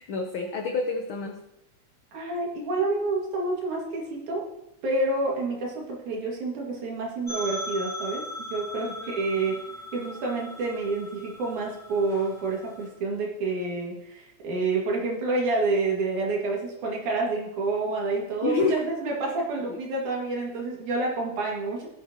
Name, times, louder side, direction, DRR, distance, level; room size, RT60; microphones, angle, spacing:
voice 1, 0.0-1.4 8.8-9.2 18.4-18.8 19.7-19.8, left 4 dB, 80° left, 4 dB, 1.1 m, -28 dB
voice 2, 2.1-4.4 4.8-8.2 8.5-9.5 9.9-21.9, right 3 dB, 80° right, -2 dB, 3.5 m, -28 dB
sound 1, 7.3-12.9, left 1 dB, ahead, 3.7 m, -39 dB
17.0 x 7.3 x 2.9 m, 0.84 s
omnidirectional pair, 3.4 m